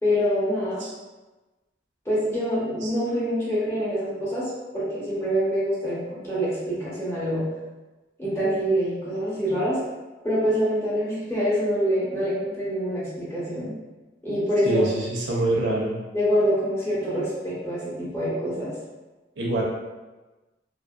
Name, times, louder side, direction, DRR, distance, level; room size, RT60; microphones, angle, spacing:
voice 1, 0.0-0.8 2.0-7.4 8.2-9.8 10.2-13.7 14.2-14.9 16.1-18.7, equal, 15° left, -9 dB, 0.9 m, -25 dB
voice 2, 14.6-16.0 19.4-19.6, right 1 dB, 80° right, -4 dB, 0.7 m, -25 dB
3.0 x 2.6 x 2.4 m, 1.2 s
head